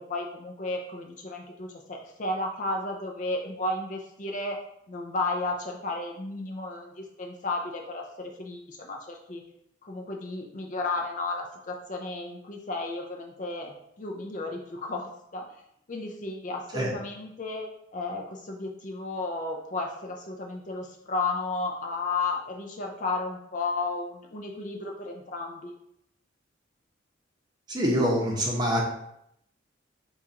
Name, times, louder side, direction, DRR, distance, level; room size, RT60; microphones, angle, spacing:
voice 1, 0.0-4.6 4.9-9.4 9.8-15.4 15.9-17.7 17.9-25.7, left 2 dB, 40° left, 1 dB, 0.4 m, -33 dB
voice 2, 27.7-28.8, equal, 20° right, -2 dB, 0.8 m, -25 dB
6.9 x 2.4 x 2.8 m, 0.76 s
head